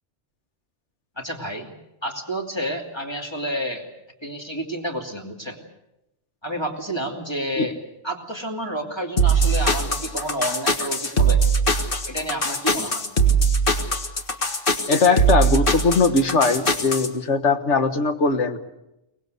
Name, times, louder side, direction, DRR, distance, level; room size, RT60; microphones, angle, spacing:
voice 1, 1.2-1.7 2.0-3.9 4.2-5.6 6.4-7.7 8.0-11.4 12.1-13.0, right 1 dB, 20° left, 1 dB, 2.8 m, -30 dB
sound 1, 9.2-17.1, right 3 dB, 50° left, 1.9 m, -21 dB
voice 2, 14.9-18.6, left 4 dB, 80° left, 8 dB, 1.7 m, -20 dB
24.0 x 19.5 x 8.1 m, 0.90 s
omnidirectional pair, 1.2 m